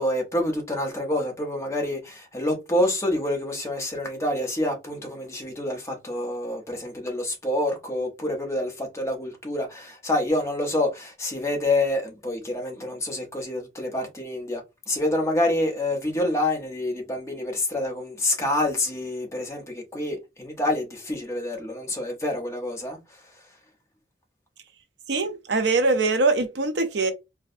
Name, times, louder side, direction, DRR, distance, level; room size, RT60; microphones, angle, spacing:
voice 1, 0.0-14.6 14.9-23.0, left 1 dB, 15° left, 0.9 m, -27 dB
voice 2, 25.1-27.1, right 3 dB, 70° right, 0.7 m, -22 dB
4.6 x 2.3 x 2.6 m
head